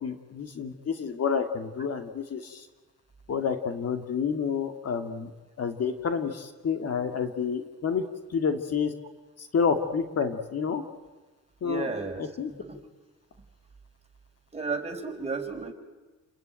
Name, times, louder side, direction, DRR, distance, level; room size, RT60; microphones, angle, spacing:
voice 1, 0.0-2.7 3.3-5.3 5.6-8.0 8.3-8.9 9.4-10.8 11.6-11.9 12.2-12.5, left 6 dB, 55° left, 7 dB, 2.4 m, -29 dB
voice 2, 11.6-12.2 12.6-12.8 14.5-15.7, right 4 dB, 20° right, 2 dB, 4.8 m, -33 dB
29.5 x 21.0 x 9.1 m, 1.2 s
cardioid pair, 90°, 30 cm